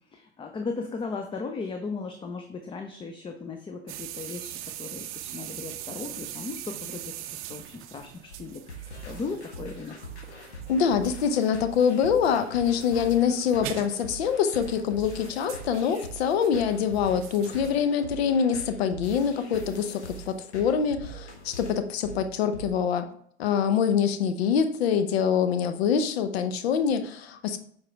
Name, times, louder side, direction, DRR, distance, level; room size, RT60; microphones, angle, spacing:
voice 1, 0.1-10.0, left 4 dB, 15° left, 5 dB, 0.6 m, -37 dB
sound 1, 3.9-17.8, right 13 dB, 40° right, 0.6 m, -43 dB
sound 2, 8.3-22.7, right 2 dB, 85° left, 1.6 m, -42 dB
voice 2, 10.7-20.0 20.3-23.1 23.4-27.6, left 7 dB, 70° left, 10 dB, 0.9 m, -25 dB
7.7 x 4.5 x 3.4 m, 0.63 s
hypercardioid pair, 85°, 33 cm